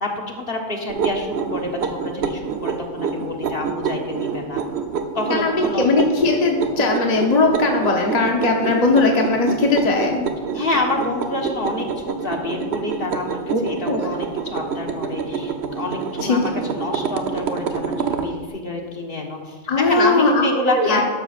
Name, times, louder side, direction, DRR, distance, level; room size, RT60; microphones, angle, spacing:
voice 1, 0.0-4.6 5.1-5.8 10.5-21.0, left 2 dB, 55° left, 1 dB, 1.6 m, -27 dB
sound 1, 0.9-18.3, right 6 dB, 70° right, 1.0 m, -27 dB
voice 2, 5.3-10.2 10.5-10.6 13.5-13.6 13.9-14.0 16.2-16.4 19.7-21.0, left 3 dB, 40° left, 0 dB, 1.0 m, -19 dB
12.5 x 12.0 x 2.5 m, 1.5 s
omnidirectional pair, 1.2 m